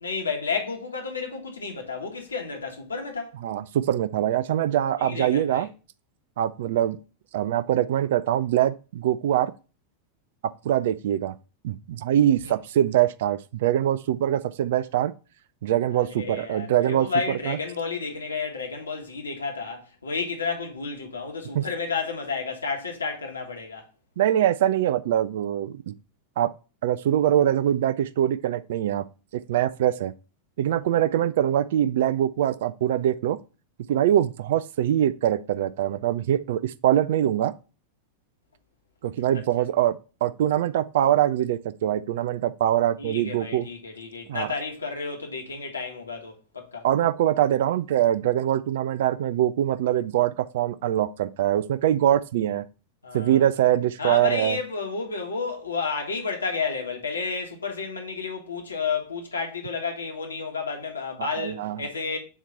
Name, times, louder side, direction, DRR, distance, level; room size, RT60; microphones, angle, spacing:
voice 1, 0.0-3.3 5.0-5.7 12.4-12.5 15.9-23.8 43.0-46.9 53.0-53.5 54.0-62.2, left 5 dB, 75° left, 1.6 m, -31 dB
voice 2, 3.4-5.7 6.4-7.0 7.3-9.5 10.6-11.3 11.6-15.1 15.6-17.1 17.5-17.6 21.5-21.6 24.2-25.9 26.4-26.5 26.8-29.0 29.5-30.1 30.6-33.4 33.9-37.5 39.0-43.7 44.3-44.5 46.8-52.6 53.1-54.6 61.2-61.8, right 11 dB, 55° right, 0.4 m, -23 dB
7.2 x 3.0 x 5.6 m
figure-of-eight pair, 90°, 0 cm